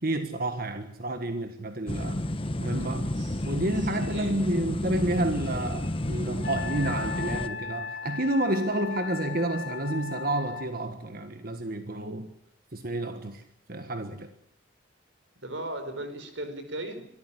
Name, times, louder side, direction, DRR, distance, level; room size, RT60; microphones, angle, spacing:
voice 1, 0.0-2.2 2.6-3.0 3.4-12.3 12.7-13.4 13.7-14.3, right 1 dB, 50° right, 1.6 m, -30 dB
sound 1, 1.9-7.5, left 1 dB, 25° left, 1.1 m, -31 dB
voice 2, 2.9-3.4 3.8-4.3 15.4-17.1, right 1 dB, 75° right, 4.8 m, -37 dB
Wind instrument woodwind instrument, 6.4-10.7, left 5 dB, 60° left, 1.7 m, -37 dB
24.5 x 14.0 x 9.9 m
head